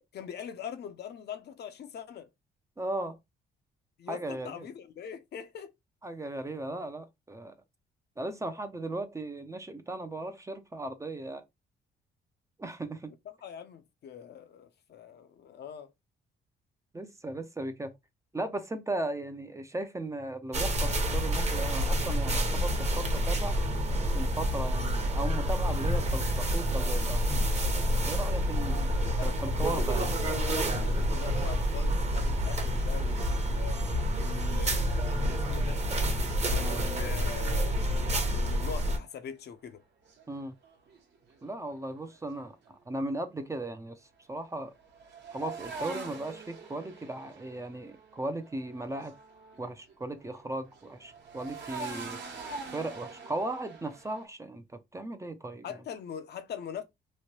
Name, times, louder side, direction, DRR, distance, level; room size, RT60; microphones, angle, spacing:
voice 1, 0.1-2.3 4.0-5.7 13.4-15.9 28.7-33.9 34.1-35.8 36.4-39.8 55.6-56.8, left 8 dB, 55° left, 0.6 m, -43 dB
voice 2, 2.8-3.2 4.1-4.7 6.0-7.5 8.2-11.5 12.6-13.1 16.9-18.0 18.3-23.6 24.1-27.3 28.0-30.1 40.3-40.5 41.4-44.7 45.3-49.2 49.6-52.2 52.7-55.7, right 2 dB, 15° right, 0.4 m, -37 dB
sound 1, 20.5-39.0, equal, 35° right, 0.9 m, -28 dB
sound 2, 36.3-39.2 40.0-42.7 44.4-49.9 50.2-54.3, right 4 dB, 60° right, 1.1 m, -45 dB
3.0 x 2.2 x 2.9 m
cardioid pair, 90°, 20 cm